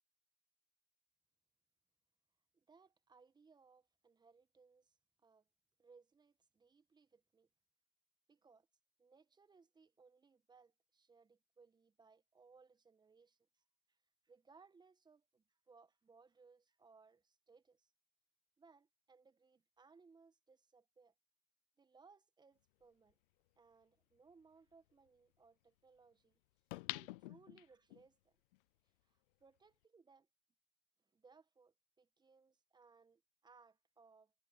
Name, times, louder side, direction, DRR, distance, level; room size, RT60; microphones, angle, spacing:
voice 1, 2.5-5.5 5.8-7.5 8.3-8.7 9.0-13.6 13.9-14.0 14.2-17.9 18.6-21.1 21.8-23.2 23.6-26.4 26.9-28.3 29.0-30.3 31.0-34.3, right 4 dB, 10° right, 1.6 m, -67 dB
sound 1, 23.1-23.2 26.7-28.0 28.5-28.6, left 21 dB, 45° left, 0.5 m, -46 dB
hypercardioid pair, 115°, 38 cm